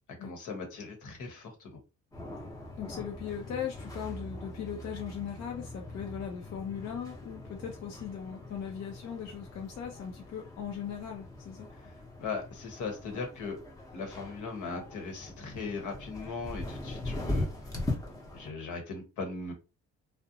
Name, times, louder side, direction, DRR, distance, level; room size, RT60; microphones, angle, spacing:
voice 1, 0.2-1.8 11.8-11.9 12.2-13.6 13.9-17.5 18.3-19.5, left 4 dB, 80° left, 1.0 m, -38 dB
sound 1, 2.1-18.5, left 2 dB, 10° left, 0.8 m, -41 dB
voice 2, 2.8-11.7, left 8 dB, 60° left, 0.7 m, -39 dB
2.5 x 2.1 x 2.7 m
cardioid pair, 90°, 30 cm